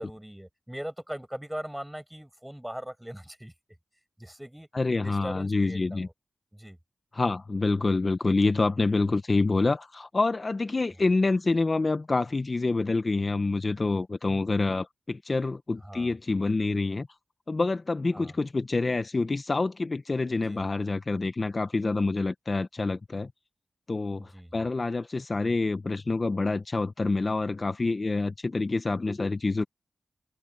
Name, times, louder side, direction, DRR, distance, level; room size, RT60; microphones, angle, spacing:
voice 1, 0.0-3.5 4.2-4.7 5.0-6.1 6.5-6.8 15.8-16.1 18.1-18.3 20.3-20.6 24.2-24.6, equal, 5° right, 6.8 m, -40 dB
voice 2, 4.7-6.1 7.1-17.1 17.5-23.3 23.9-29.6, left 3 dB, 45° left, 0.9 m, -27 dB
cardioid pair, 55°, 0 cm